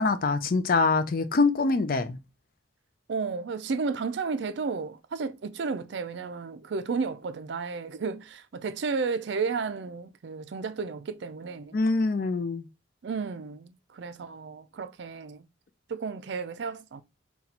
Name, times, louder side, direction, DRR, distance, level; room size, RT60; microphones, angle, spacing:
voice 1, 0.0-2.2 11.7-12.7, left 3 dB, 45° left, 0.4 m, -24 dB
voice 2, 3.1-11.8 13.0-15.5 15.9-17.0, right 4 dB, 60° right, 0.4 m, -33 dB
4.0 x 2.3 x 4.2 m
head